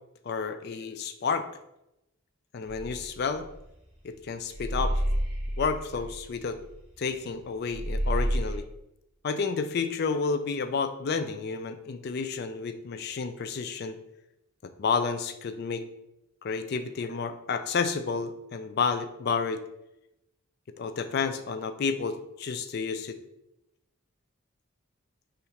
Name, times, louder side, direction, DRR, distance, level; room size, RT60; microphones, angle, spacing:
voice 1, 0.2-1.5 2.5-3.5 4.0-5.0 5.6-6.6 7.0-8.7 9.2-14.0 14.6-15.8 16.4-19.6 20.8-23.2, left 5 dB, 50° left, 9 dB, 0.3 m, -30 dB
sound 1, 2.7-4.1 4.5-7.4 7.7-8.6, equal, 30° right, 1.5 m, -30 dB
5.6 x 2.5 x 3.2 m, 0.87 s
head